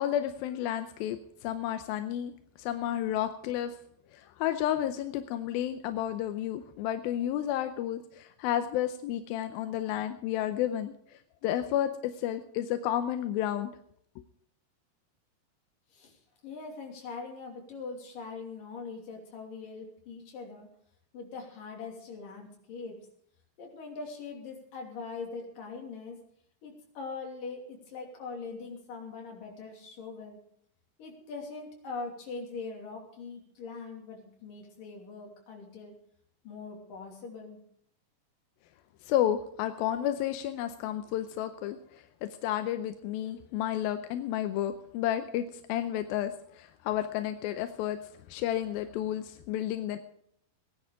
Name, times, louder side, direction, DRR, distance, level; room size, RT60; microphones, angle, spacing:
voice 1, 0.0-2.3 2.6-3.7 4.1-10.9 11.4-13.7 39.1-41.8 42.2-48.0 48.3-50.0, left 11 dB, 80° left, 9 dB, 2.4 m, -31 dB
voice 2, 15.9-20.7 21.1-23.0 23.6-26.2 26.6-30.4 31.0-35.9 36.4-37.6, left 4 dB, 55° left, 1 dB, 4.4 m, -42 dB
17.5 x 11.0 x 4.9 m, 0.68 s
omnidirectional pair, 4.7 m